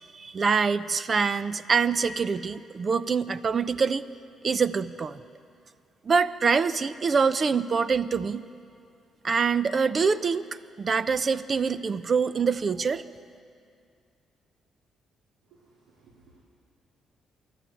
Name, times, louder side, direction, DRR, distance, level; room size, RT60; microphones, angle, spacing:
voice 1, 0.1-4.0 4.4-5.2 6.1-8.4 9.2-10.5 10.8-13.0, right 5 dB, 40° right, 13 dB, 0.7 m, -25 dB
voice 2, 15.5-16.4, right 3 dB, 85° right, -6 dB, 3.6 m, -59 dB
26.5 x 11.0 x 9.2 m, 2.4 s
cardioid pair, 90°, 0 cm